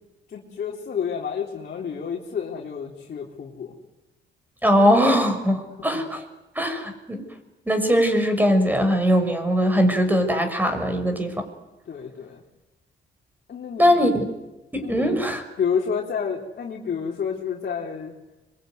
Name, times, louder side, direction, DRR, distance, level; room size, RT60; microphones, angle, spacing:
voice 1, 0.3-3.8 5.8-6.1 11.9-12.4 13.5-14.1 14.8-15.2 15.6-18.1, left 6 dB, 55° left, -1 dB, 3.9 m, -30 dB
voice 2, 4.6-6.2 6.6-7.2 7.7-11.4 13.8-14.1 14.7-15.4, equal, 10° right, 7 dB, 6.2 m, -20 dB
26.0 x 23.0 x 9.6 m, 1.0 s
cardioid pair, 90°, 20 cm